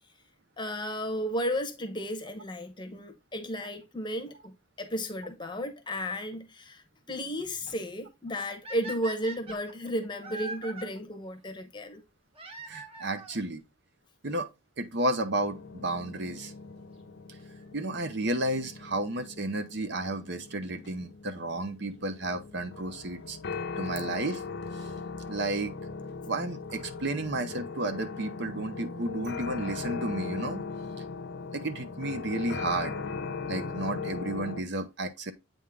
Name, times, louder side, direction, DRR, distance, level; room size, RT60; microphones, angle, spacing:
voice 1, 0.6-12.0, equal, 20° left, 0.8 m, -34 dB
sound 1, 8.6-10.9 12.3-13.4 14.3-14.4 15.1-15.2 15.4-15.5 17.4-17.6 20.5-20.6 21.6-21.7 23.1-23.2 23.5-23.6 23.9-24.0 24.1-24.2 24.4-24.5 24.7-24.8 25.0-25.1, right 2 dB, 25° right, 0.9 m, -42 dB
voice 2, 12.7-13.6 14.2-14.5 14.8-16.5 17.7-23.4 23.8-24.4 25.3-25.7 26.3-30.6 31.5-32.9 33.5-35.3, right 2 dB, 55° right, 0.7 m, -32 dB
sound 2, 15.3-34.6, left 4 dB, 50° left, 0.6 m, -39 dB
8.4 x 3.6 x 3.4 m
head